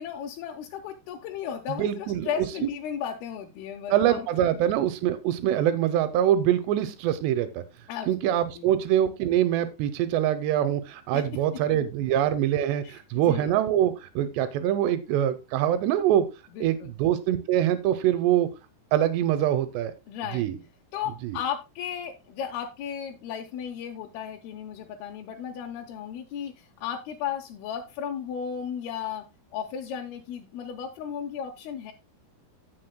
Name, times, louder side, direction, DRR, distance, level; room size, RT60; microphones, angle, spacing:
voice 1, 0.0-4.3 7.9-8.7 11.1-11.2 12.8-13.5 16.5-16.9 20.1-20.5 20.9-29.2 29.5-31.9, left 8 dB, 75° left, 1 dB, 2.6 m, -35 dB
voice 2, 1.7-2.3 3.9-7.6 8.1-16.3 16.6-18.5 18.9-19.9 20.3-20.5 21.2-21.4, right 11 dB, 85° right, 12 dB, 2.9 m, -24 dB
15.5 x 6.1 x 2.2 m, 0.27 s
omnidirectional pair, 4.8 m